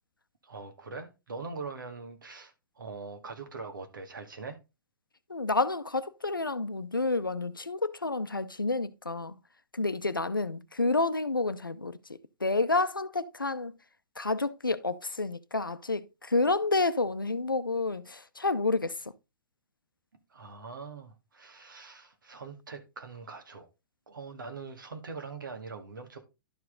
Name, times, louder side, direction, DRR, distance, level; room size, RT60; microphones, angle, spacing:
voice 1, 0.4-4.6 20.3-23.7 24.1-26.2, right 4 dB, 70° right, 2.0 m, -42 dB
voice 2, 5.3-9.4 9.7-12.0 12.4-13.7 14.2-19.0, left 3 dB, 85° left, 0.7 m, -29 dB
11.5 x 4.7 x 3.8 m
figure-of-eight pair, 110°, 11 cm